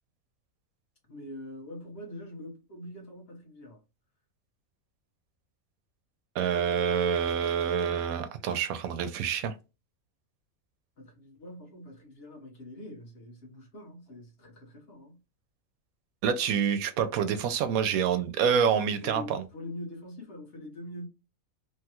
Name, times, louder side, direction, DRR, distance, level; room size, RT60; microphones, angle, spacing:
voice 1, 1.1-3.8 11.0-15.2 19.0-21.1, left 1 dB, 50° left, 1.3 m, -44 dB
voice 2, 6.3-9.5 16.2-19.4, right 7 dB, 85° right, 1.0 m, -27 dB
3.2 x 2.3 x 2.9 m
omnidirectional pair, 1.5 m